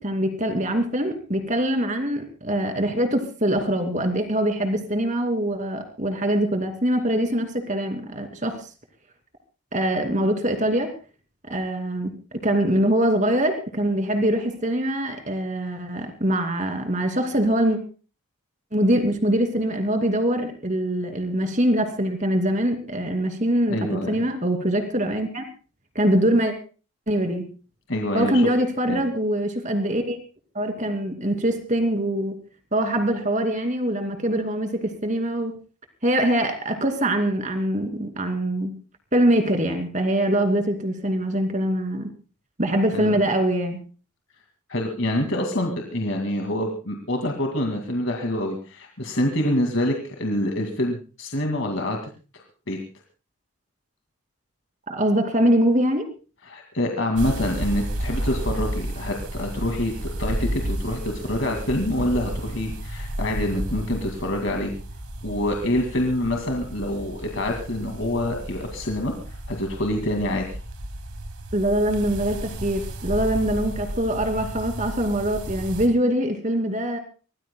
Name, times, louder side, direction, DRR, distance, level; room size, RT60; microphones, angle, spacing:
voice 1, 0.0-8.6 9.7-10.9 11.4-12.1 12.4-17.8 18.7-25.4 25.9-26.5 27.1-27.4 28.1-30.2 30.5-32.3 32.7-35.5 36.0-38.7 39.1-42.1 42.6-43.8 54.9-56.1 71.5-77.0, right 1 dB, 35° right, 6 dB, 2.6 m, -23 dB
voice 2, 23.7-24.2 27.9-28.4 28.9-29.0 42.9-43.2 44.7-52.0 52.3-52.8 56.5-64.7 65.2-69.1 69.5-70.4, left 1 dB, 55° left, 2 dB, 2.3 m, -26 dB
sound 1, 57.2-75.9, right 1 dB, 85° right, 2.6 m, -32 dB
25.0 x 18.5 x 2.2 m, 0.35 s
head